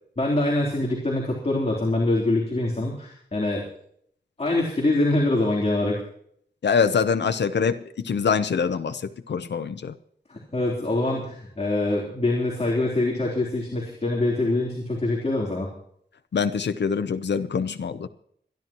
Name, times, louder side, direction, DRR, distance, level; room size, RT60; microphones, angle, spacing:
voice 1, 0.2-3.7 4.4-6.0 10.3-15.7, left 2 dB, 35° left, -2 dB, 3.5 m, -24 dB
voice 2, 6.6-9.0 9.3-9.9 16.3-18.1, left 6 dB, 75° left, 10 dB, 0.8 m, -24 dB
26.0 x 11.0 x 3.0 m, 0.65 s
wide cardioid pair, 90°, 18 cm